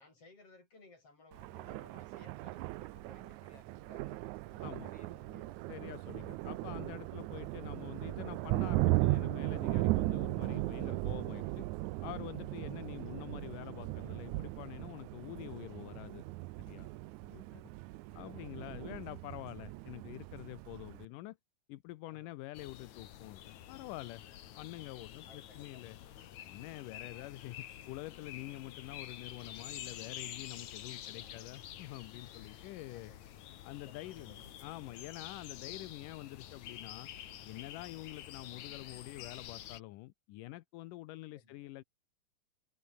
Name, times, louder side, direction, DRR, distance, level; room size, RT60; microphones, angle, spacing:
voice 1, 0.0-5.6 6.0-6.3 17.5-17.8 18.1-18.9 20.8-21.0 22.1-22.4 24.8-24.9 25.3-25.8 26.4-26.5 27.1-27.3 30.9-31.5 32.9-33.2 33.8-34.5 34.8-35.0 41.3-41.7, left 3 dB, 45° left, 8.3 m, -61 dB
Thunder, 1.3-21.1, right 19 dB, 80° right, 1.8 m, -37 dB
voice 2, 5.7-11.7 12.0-16.2 16.7-16.9 17.2-17.7 18.1-21.4 21.7-24.2 24.6-26.0 26.4-33.1 33.6-37.1 37.5-41.8, left 17 dB, 80° left, 2.4 m, -47 dB
sound 1, 22.5-39.8, left 11 dB, 65° left, 2.6 m, -49 dB
omnidirectional pair, 3.8 m